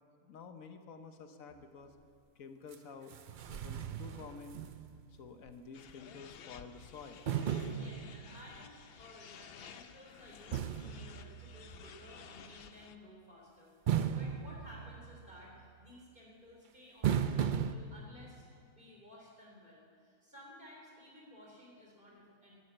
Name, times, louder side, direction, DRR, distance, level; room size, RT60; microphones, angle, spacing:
voice 1, 0.2-1.9 2.4-3.1 3.5-4.6 5.1-7.3, left 5 dB, 80° left, 7 dB, 1.4 m, -50 dB
sound 1, 2.7-2.8 3.1-5.2 5.5-5.6 7.3-8.6 10.5-11.9 13.9-15.4 17.0-17.8, right 9 dB, 60° right, 0.5 m, -36 dB
sound 2, 5.7-13.0, left 7 dB, 55° left, 0.7 m, -54 dB
voice 2, 7.7-18.5 18.7-22.6, left 1 dB, 40° right, -3 dB, 4.2 m, -55 dB
12.5 x 10.5 x 8.8 m, 2.3 s
omnidirectional pair, 1.4 m